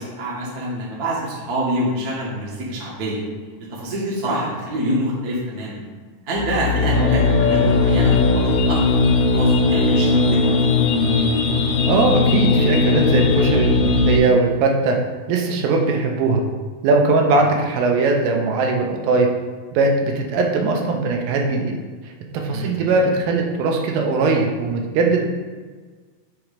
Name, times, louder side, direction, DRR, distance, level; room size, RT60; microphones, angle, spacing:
voice 1, 0.0-3.2 3.7-5.8 6.3-10.5 22.5-22.8, right 1 dB, 65° right, -5 dB, 0.9 m, -26 dB
sound 1, 6.4-14.2, left 3 dB, 85° left, 2.5 m, -18 dB
voice 2, 11.9-15.0 15.3-16.4 16.8-19.3 19.7-21.7 22.3-25.3, right 3 dB, 90° right, 1 dB, 2.6 m, -20 dB
6.2 x 3.1 x 4.9 m, 1.5 s
omnidirectional pair, 4.1 m